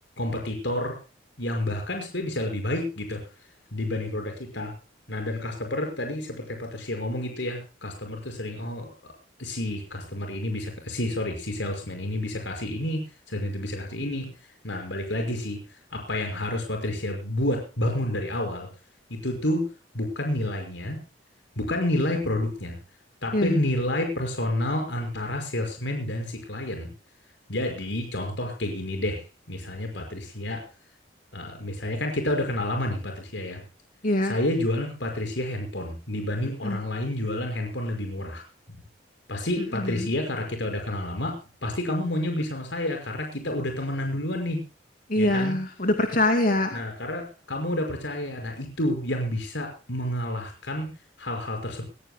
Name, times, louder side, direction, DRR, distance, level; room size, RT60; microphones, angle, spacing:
voice 1, 0.2-1.0 1.4-3.2 3.7-4.7 5.1-8.9 9.4-14.3 14.6-18.7 19.1-19.7 19.9-21.0 21.6-22.8 23.2-26.9 27.5-30.6 31.3-33.6 34.2-38.4 39.3-41.4 41.6-44.6 45.2-45.6 46.7-50.9 51.2-51.8, left 1 dB, 75° left, 4 dB, 5.6 m, -29 dB
voice 2, 34.0-34.4 36.6-36.8 39.7-40.1 45.1-46.8, left 1 dB, 50° left, 5 dB, 2.6 m, -24 dB
21.0 x 20.5 x 2.2 m, 0.34 s
head